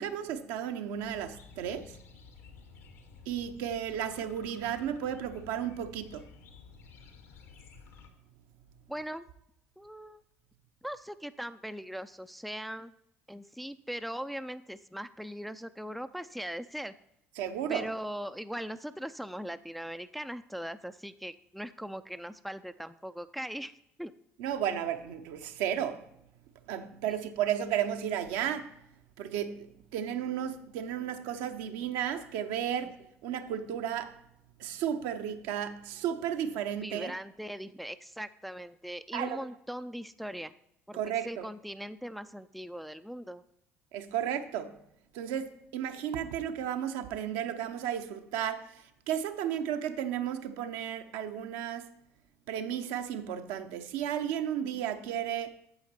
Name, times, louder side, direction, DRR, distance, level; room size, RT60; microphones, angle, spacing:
voice 1, 0.0-2.0 3.3-6.2 17.4-17.9 24.4-26.0 26.7-28.7 29.2-29.7 29.9-34.2 34.6-37.1 39.1-39.4 40.9-41.4 43.9-44.8 45.1-51.9 52.5-55.5, right 9 dB, 65° right, 0.8 m, -33 dB
sound 1, 0.9-8.1, left 5 dB, 65° left, 1.3 m, -53 dB
voice 2, 8.9-9.3 9.8-10.2 10.8-12.9 13.3-16.9 17.7-23.7 24.0-24.1 27.1-27.2 36.8-40.5 40.9-43.4, equal, ahead, 0.4 m, -40 dB
8.8 x 7.2 x 4.3 m
figure-of-eight pair, 55°, 7 cm